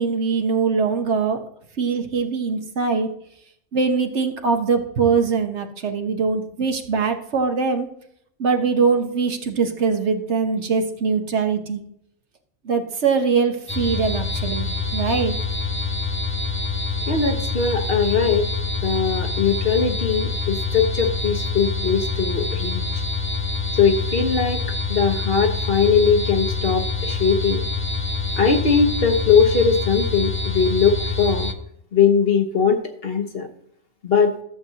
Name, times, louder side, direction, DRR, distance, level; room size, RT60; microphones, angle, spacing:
voice 1, 0.0-1.4 1.8-3.1 3.7-7.9 8.4-11.8 12.6-15.3, right 5 dB, 60° right, 5 dB, 1.4 m, -22 dB
sound 1, 13.7-31.5, left 3 dB, 15° left, 0.5 m, -26 dB
voice 2, 17.0-18.5 18.8-23.0 23.8-27.6 28.4-31.5 31.9-33.5 34.0-34.4, left 6 dB, 50° left, 5 dB, 1.3 m, -20 dB
13.5 x 7.7 x 2.8 m, 0.70 s
omnidirectional pair, 1.3 m